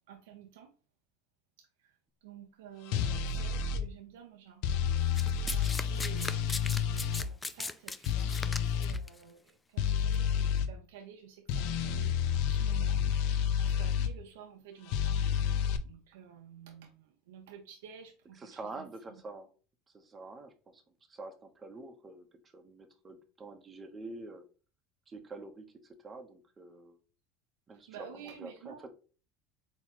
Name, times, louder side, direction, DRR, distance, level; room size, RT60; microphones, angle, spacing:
voice 1, 0.1-0.7 1.6-1.7 2.2-4.6 5.3-6.8 7.1-9.4 9.7-15.1 15.8-18.4 18.8-18.9 27.9-28.8, right 8 dB, 90° right, 0.6 m, -51 dB
sound 1, 2.9-3.8 4.6-7.3 8.1-9.0 9.8-10.7 11.5-14.1 14.9-15.8, left 7 dB, 70° left, 0.5 m, -30 dB
Domestic sounds home sounds, 5.2-9.1 10.0-10.2, left 3 dB, 15° left, 0.3 m, -38 dB
voice 2, 18.3-19.5 19.9-20.8 21.1-22.3 22.5-24.4 25.1-27.0 27.7-28.9, right 3 dB, 20° right, 0.9 m, -47 dB
4.3 x 3.0 x 2.9 m
supercardioid pair, 125°, 0 cm